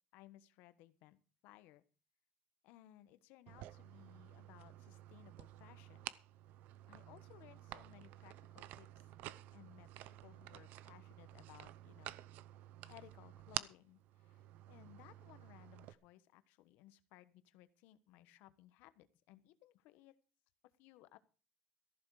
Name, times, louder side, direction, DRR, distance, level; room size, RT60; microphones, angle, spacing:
voice 1, 0.1-1.8 2.6-6.1 6.9-9.1 9.5-12.1 12.9-14.4 14.7-20.1 20.8-21.2, left 15 dB, 75° left, 13 dB, 1.3 m, -62 dB
sound 1, 3.5-15.9, right 14 dB, 60° right, 0.7 m, -51 dB
14.5 x 12.0 x 4.9 m, 0.35 s
cardioid pair, 165°, 3 cm